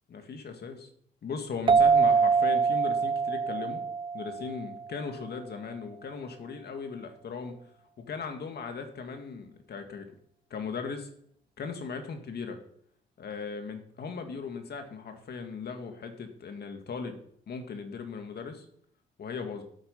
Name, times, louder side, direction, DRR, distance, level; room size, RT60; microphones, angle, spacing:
voice 1, 0.1-0.9 1.2-3.8 4.1-7.6 8.0-10.1 10.5-11.1 11.6-12.6 13.2-17.2 17.5-18.7 19.2-19.6, left 5 dB, 55° left, 5 dB, 2.0 m, -38 dB
sound 1, 1.7-5.0, right 5 dB, 25° right, 0.4 m, -24 dB
8.2 x 8.2 x 8.3 m, 0.66 s
cardioid pair, 90°, 20 cm